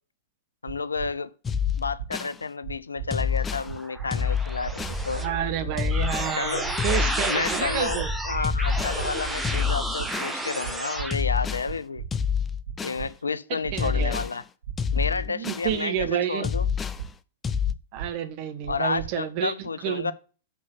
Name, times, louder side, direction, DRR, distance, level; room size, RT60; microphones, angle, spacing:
voice 1, 0.6-1.3 1.8-5.2 6.3-6.6 7.3-12.0 12.8-14.4 14.9-16.7 18.7-20.1, left 4 dB, 80° left, 0.5 m, -31 dB
sound 1, 0.7-1.1 1.6-2.1 2.6-3.1 3.6-4.1 4.6-5.1 5.6-6.1 6.6-7.1 7.6-8.1 8.6-9.1 9.6-10.1 10.6-11.1 11.6-12.1 12.6-13.1 13.6-14.1 14.6-15.1 15.6-16.1 16.6-17.1 17.6-18.1 18.6-19.1, right 8 dB, 70° right, 1.0 m, -36 dB
sound 2, 1.4-2.3 3.1-3.7 4.1-5.0 5.8-6.3 6.8-7.7 8.4-9.0 9.4-10.4 11.1-11.7 12.1-13.0 13.8-14.3 14.8-15.7 16.4-17.0 17.4-17.7, left 7 dB, 15° left, 0.5 m, -27 dB
sound 3, 3.4-11.1, right 1 dB, 10° right, 1.1 m, -31 dB
voice 2, 5.1-8.1 13.5-14.2 15.1-16.5 17.9-20.1, right 10 dB, 45° right, 1.2 m, -30 dB
6.2 x 5.3 x 6.9 m
figure-of-eight pair, 100°, 0 cm